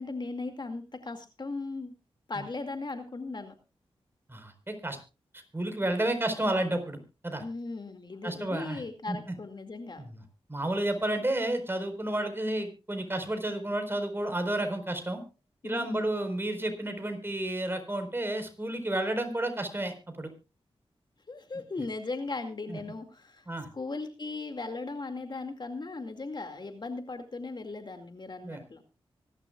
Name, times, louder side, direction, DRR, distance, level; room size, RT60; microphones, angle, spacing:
voice 1, 0.0-1.9 2.3-3.5 7.4-10.0 15.6-16.2 21.3-23.5 23.7-28.8, left 3 dB, 45° left, 6 dB, 2.2 m, -38 dB
voice 2, 4.3-5.0 5.3-7.0 7.2-7.4 8.2-8.8 9.1-9.3 10.0-10.2 10.5-15.2 15.6-20.3 22.7-22.8 23.5-23.7 28.4-28.6, right 1 dB, 20° right, 7 dB, 4.4 m, -31 dB
25.0 x 11.5 x 2.4 m, 0.30 s
cardioid pair, 60°, 10 cm